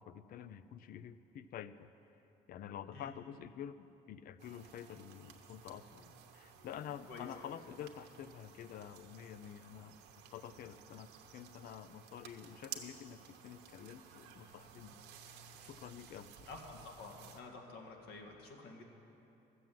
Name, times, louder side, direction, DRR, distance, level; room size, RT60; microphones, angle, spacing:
voice 1, 0.0-1.9 2.5-10.0 10.3-15.4 15.6-16.5, left 9 dB, 60° left, 14 dB, 0.5 m, -49 dB
sound 1, 4.4-17.4, right 7 dB, 85° right, 1.0 m, -55 dB
voice 2, 16.5-18.8, left 3 dB, 75° left, 1 dB, 1.7 m, -50 dB
12.5 x 7.7 x 7.5 m, 2.9 s
cardioid pair, 110°, 17 cm